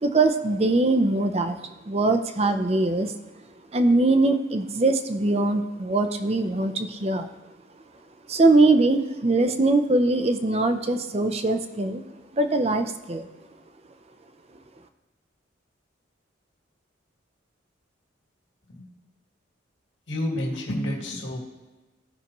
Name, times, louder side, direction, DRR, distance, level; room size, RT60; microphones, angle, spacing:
voice 1, 0.0-1.6 1.9-3.1 3.7-7.3 8.3-12.0 12.3-13.3, right 2 dB, 30° right, 8 dB, 0.6 m, -22 dB
voice 2, 20.1-21.4, left 1 dB, 65° left, -2 dB, 2.1 m, -29 dB
16.0 x 5.7 x 3.0 m, 1.2 s
head